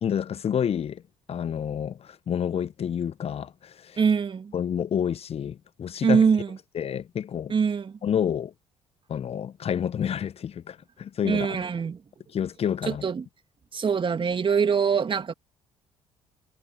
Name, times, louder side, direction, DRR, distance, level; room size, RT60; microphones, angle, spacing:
voice 1, 0.0-1.0 1.3-4.0 4.5-6.2 6.7-7.5 8.0-8.5 9.1-11.6 12.3-13.1, left 8 dB, 45° left, 1.1 m, -29 dB
voice 2, 4.0-4.5 6.0-6.5 7.5-8.0 11.2-12.0 12.9-13.2 13.7-15.3, right 6 dB, 35° right, 2.3 m, -23 dB
figure-of-eight pair, 50°, 15 cm